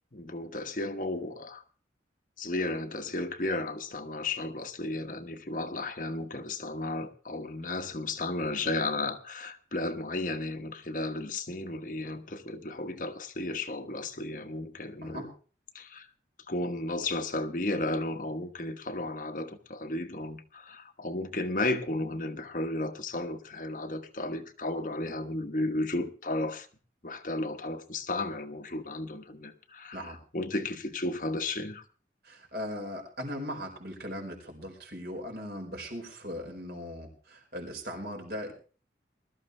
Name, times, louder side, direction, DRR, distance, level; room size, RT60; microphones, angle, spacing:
voice 1, 0.1-1.6 2.4-15.3 15.7-16.0 16.5-26.7 27.0-31.8, left 2 dB, 50° left, 1.3 m, -34 dB
voice 2, 32.2-38.5, equal, 60° right, 4.8 m, -39 dB
21.0 x 13.0 x 3.3 m
head